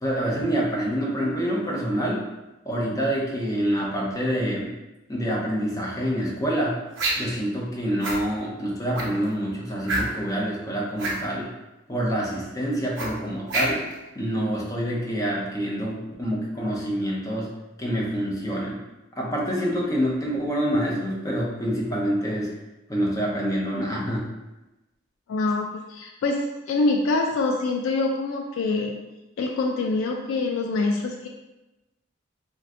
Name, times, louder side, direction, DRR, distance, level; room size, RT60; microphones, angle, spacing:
voice 1, 0.0-2.2 2.6-4.8 5.1-6.8 7.2-11.5 11.9-13.8 14.2-17.5 17.8-18.8 19.2-22.6 22.9-24.3, equal, 15° left, -4 dB, 0.5 m, -26 dB
sound 1, 6.9-7.4 8.0-8.2 8.9-9.2 9.8-10.3 10.9-11.2 13.0-13.9, right 2 dB, 65° right, 0.7 m, -27 dB
voice 2, 25.3-29.0 29.4-31.3, left 3 dB, 75° left, 1 dB, 0.3 m, -25 dB
2.5 x 2.2 x 3.5 m, 1.0 s
head